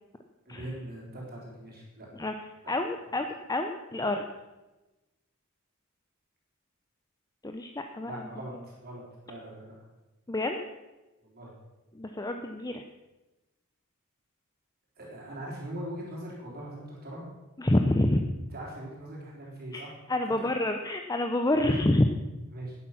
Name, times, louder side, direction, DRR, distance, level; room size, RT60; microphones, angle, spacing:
voice 1, 0.5-2.1 2.6-2.7 8.0-9.8 11.2-11.5 15.0-17.3 18.5-19.9 20.4-20.5 21.6-21.7 22.5-22.8, right 1 dB, 45° right, -4 dB, 3.8 m, -41 dB
voice 2, 2.7-4.2 7.4-8.2 10.3-10.6 11.9-12.8 17.6-18.2 19.7-22.1, left 1 dB, 15° left, 5 dB, 0.6 m, -28 dB
11.0 x 10.0 x 5.9 m, 1.1 s
head